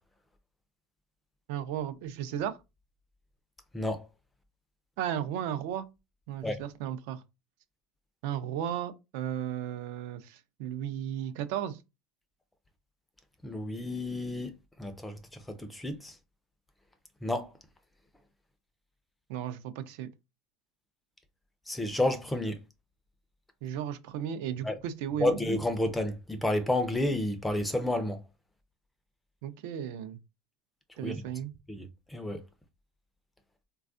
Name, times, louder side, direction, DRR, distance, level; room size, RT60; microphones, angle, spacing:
voice 1, 1.5-2.6 5.0-5.9 6.3-7.2 8.2-11.8 19.3-20.1 23.6-25.4 29.4-30.2 31.0-31.5, right 10 dB, 70° right, 0.5 m, -35 dB
voice 2, 13.4-14.5 14.8-15.2 15.5-16.2 17.2-17.5 21.7-22.6 24.6-24.8 25.2-28.2 31.0-31.2 31.7-32.4, left 1 dB, 5° left, 0.4 m, -30 dB
4.1 x 2.3 x 2.5 m
cardioid pair, 160°, 0 cm